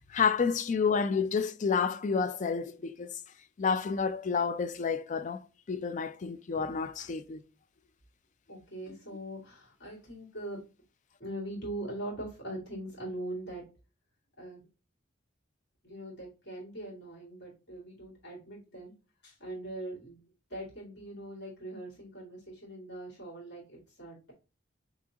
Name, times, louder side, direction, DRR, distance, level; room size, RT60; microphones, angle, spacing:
voice 1, 0.0-3.2 3.6-5.4 5.7-7.4, left 5 dB, 40° left, 0.4 m, -30 dB
voice 2, 8.5-10.6 11.2-13.7 14.4-14.7 15.8-18.9 19.2-20.2 20.5-24.3, right 1 dB, 60° left, 2.4 m, -41 dB
6.0 x 2.9 x 2.8 m
head